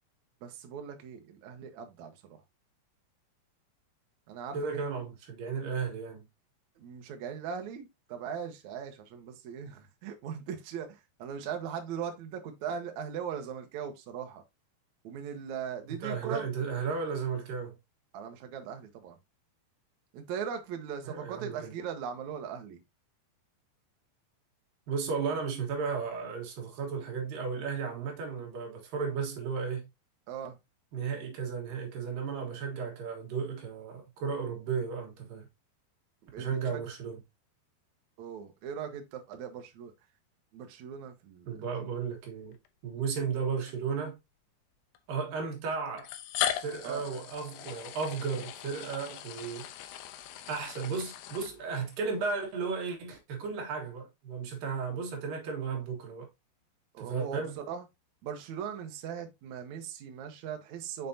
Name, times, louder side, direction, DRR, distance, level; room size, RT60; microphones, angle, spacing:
voice 1, 0.4-2.4 4.3-4.8 6.8-14.4 15.0-16.5 18.1-19.2 20.1-22.8 30.3-30.6 36.2-36.8 38.2-39.9 40.5-41.6 46.8-47.0 56.9-57.8 58.2-61.1, right 7 dB, 90° right, 1.6 m, -39 dB
voice 2, 4.5-6.2 15.9-17.7 21.0-21.7 24.9-29.9 30.9-35.5 36.4-37.2 41.5-42.5 42.8-44.2 45.1-46.1 46.6-49.7 50.5-56.3 57.0-57.6, right 5 dB, 60° right, 2.9 m, -34 dB
sound 1, 42.5-42.7 43.7-43.8 44.9-45.0 46.0-52.0, left 11 dB, 80° left, 2.4 m, -38 dB
6.6 x 5.6 x 2.7 m
omnidirectional pair, 5.1 m